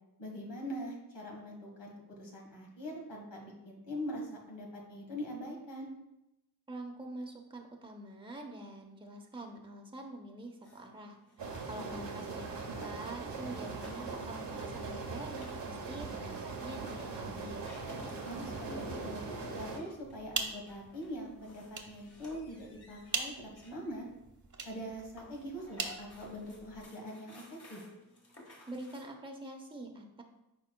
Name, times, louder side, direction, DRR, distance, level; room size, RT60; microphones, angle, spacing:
voice 1, 0.2-5.9 11.9-12.3 18.2-19.2 19.5-24.1 24.6-27.4 27.7-27.8, equal, 80° left, 0 dB, 1.7 m, -43 dB
voice 2, 6.7-17.8 28.7-30.2, right 1 dB, 10° right, 1 dB, 0.9 m, -46 dB
sound 1, 10.6-29.1, left 1 dB, 35° left, 1.7 m, -54 dB
sound 2, 11.4-19.8, right 4 dB, 85° right, 1.1 m, -41 dB
sound 3, 20.0-26.9, right 4 dB, 45° right, 0.9 m, -42 dB
8.4 x 4.9 x 2.3 m, 0.90 s
wide cardioid pair, 70°, 41 cm